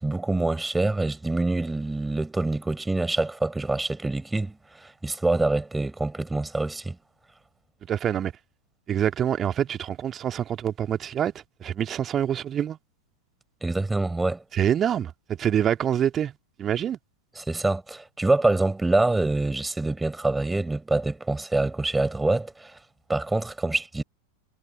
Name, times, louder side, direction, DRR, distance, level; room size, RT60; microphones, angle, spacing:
voice 1, 0.0-7.0 13.6-14.4 17.4-22.8 23.1-24.0, right 2 dB, 5° right, 4.9 m, -25 dB
voice 2, 7.8-8.3 8.9-11.3 11.6-12.8 14.5-16.3 16.6-17.0, right 9 dB, 25° right, 2.4 m, -26 dB
figure-of-eight pair, 90°, 0 cm